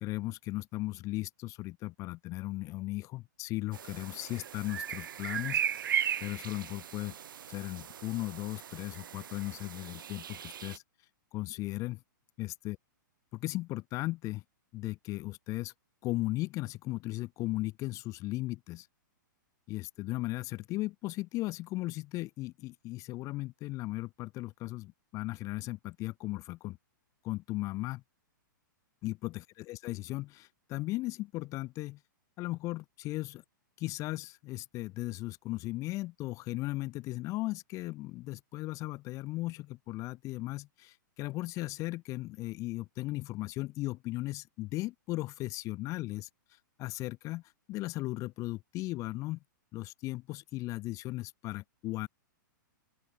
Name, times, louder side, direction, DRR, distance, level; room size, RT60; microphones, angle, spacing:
voice 1, 0.0-5.6 6.2-7.2 7.5-10.8 11.3-12.0 12.4-12.8 13.3-14.4 14.7-15.7 16.0-18.9 19.7-26.8 27.2-28.0 29.0-32.0 32.4-33.4 33.8-47.4 47.7-49.4 49.7-52.1, left 19 dB, 30° left, 2.0 m, -37 dB
sound 1, 3.7-10.8, right 9 dB, 80° right, 1.1 m, -37 dB
open air
hypercardioid pair, 145°, 11 cm